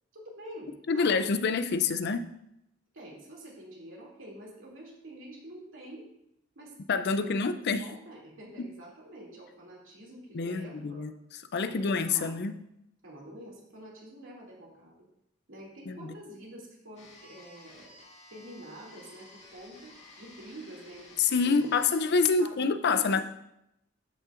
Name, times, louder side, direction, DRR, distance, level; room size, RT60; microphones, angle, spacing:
voice 1, 0.1-1.6 2.9-6.0 6.5-7.5 7.8-11.1 11.5-12.5 13.0-14.9 15.5-17.9 18.3-21.8 22.4-23.2, right 1 dB, 70° right, -4 dB, 2.6 m, -47 dB
voice 2, 0.9-2.3 6.9-7.9 8.6-8.7 10.3-11.1 11.5-12.6 15.9-16.1 21.2-23.2, left 4 dB, 55° left, 10 dB, 0.5 m, -27 dB
sound 1, 17.0-22.1, left 2 dB, 35° left, 1.7 m, -53 dB
12.5 x 5.5 x 2.5 m, 0.80 s
head